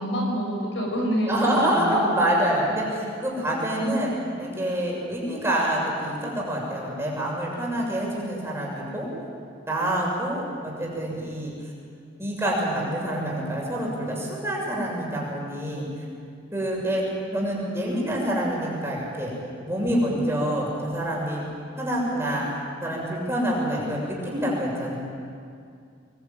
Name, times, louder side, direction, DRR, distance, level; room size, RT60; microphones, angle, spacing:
voice 1, 0.0-2.1, equal, 65° left, 1 dB, 6.8 m, -27 dB
voice 2, 1.3-4.1 4.4-9.1 9.7-11.5 12.2-15.9 16.5-17.0 17.3-19.3 19.7-21.4 21.8-22.5 22.8-25.0, right 1 dB, 15° right, -3 dB, 7.0 m, -26 dB
27.5 x 21.5 x 9.2 m, 2.3 s
head